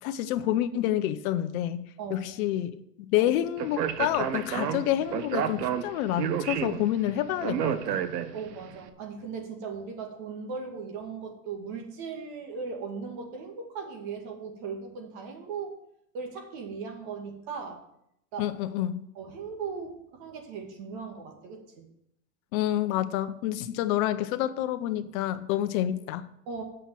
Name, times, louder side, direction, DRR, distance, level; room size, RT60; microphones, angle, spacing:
voice 1, 0.0-1.8 2.1-2.8 3.1-8.0 18.4-19.0 22.5-26.3, left 12 dB, 60° left, 11 dB, 0.9 m, -28 dB
voice 2, 2.0-2.3 3.2-3.3 8.3-15.7 16.1-17.8 18.3-18.5 19.1-21.9 26.5-26.6, right 5 dB, 50° right, 2 dB, 2.3 m, -38 dB
Speech, 3.6-8.6, right 9 dB, 85° right, 1.0 m, -30 dB
7.9 x 5.7 x 7.6 m, 0.77 s
hypercardioid pair, 120°, 47 cm